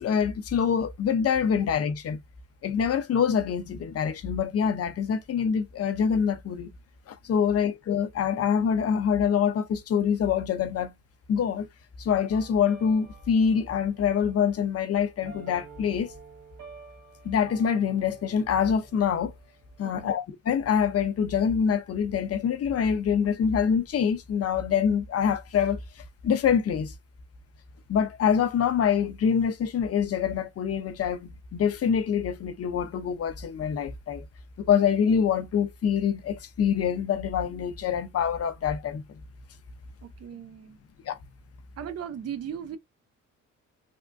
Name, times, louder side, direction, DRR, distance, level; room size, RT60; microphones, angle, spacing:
voice 1, 0.0-2.2 2.6-6.7 7.1-10.9 11.3-11.7 12.0-16.1 17.2-19.3 19.8-26.9 27.9-34.2 34.6-39.0 41.0-41.2, left 7 dB, 50° left, 0.7 m, -25 dB
sound 1, 12.3-20.0, right 5 dB, 80° right, 1.6 m, -50 dB
voice 2, 19.8-20.2 40.0-40.8 41.8-42.8, right 9 dB, 55° right, 0.7 m, -37 dB
3.5 x 2.1 x 2.5 m
cardioid pair, 90°, 30 cm